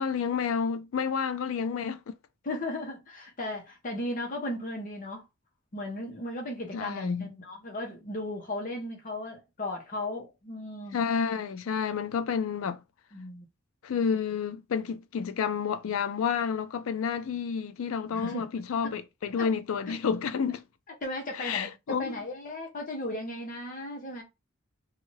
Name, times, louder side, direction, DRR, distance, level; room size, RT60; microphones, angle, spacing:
voice 1, 0.0-2.1 6.7-7.3 10.9-12.8 13.8-20.6 21.4-22.2, left 6 dB, 90° left, 0.4 m, -30 dB
voice 2, 2.4-5.2 5.7-11.0 13.1-13.4 18.1-18.5 19.4-19.5 19.9-20.0 21.0-24.2, left 1 dB, 40° left, 0.8 m, -36 dB
2.7 x 2.3 x 3.1 m
head